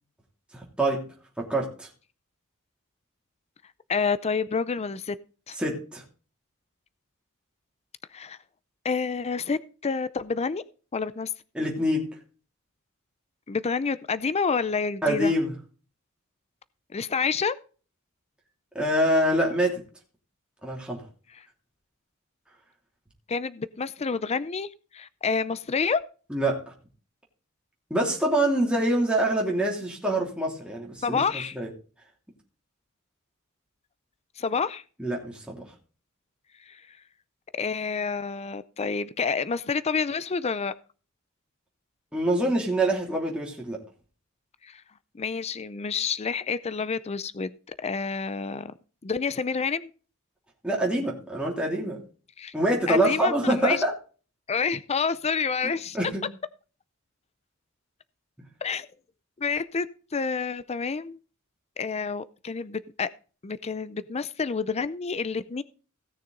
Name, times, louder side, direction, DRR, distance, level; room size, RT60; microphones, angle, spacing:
voice 1, 0.5-1.1 1.4-1.9 5.6-6.0 11.5-12.1 15.0-15.5 18.7-19.8 20.6-21.0 26.3-26.6 27.9-31.2 31.5-31.7 35.0-35.5 42.1-43.8 50.6-52.0 52.5-53.9 55.9-56.2 58.4-58.5, right 1 dB, 5° right, 2.9 m, -25 dB
voice 2, 3.9-5.2 5.5-5.6 8.1-8.4 8.8-10.6 10.9-11.3 13.5-15.3 16.9-17.6 21.3-21.4 23.3-26.0 31.0-31.6 34.4-34.8 36.7-37.0 37.6-40.7 44.6-44.8 45.1-48.7 49.0-49.9 52.4-52.5 52.9-53.8 54.5-56.0 58.6-58.9 59.4-59.9 60.1-61.2 61.8-63.1 63.4-65.6, left 5 dB, 30° left, 0.5 m, -28 dB
17.0 x 6.6 x 3.9 m
head